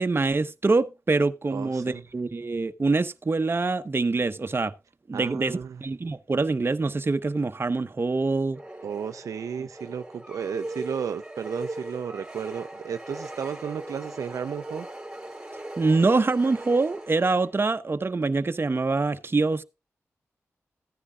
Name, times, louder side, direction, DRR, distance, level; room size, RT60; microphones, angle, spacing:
voice 1, 0.0-4.7 5.1-8.6 9.6-9.7 15.8-19.6, right 3 dB, 45° right, 1.0 m, -25 dB
voice 2, 1.5-2.0 5.1-5.8 8.8-14.9, right 7 dB, 85° right, 0.5 m, -33 dB
sound 1, 8.5-17.6, right 1 dB, 10° right, 3.3 m, -39 dB
15.5 x 9.8 x 2.4 m
cardioid pair, 45°, 5 cm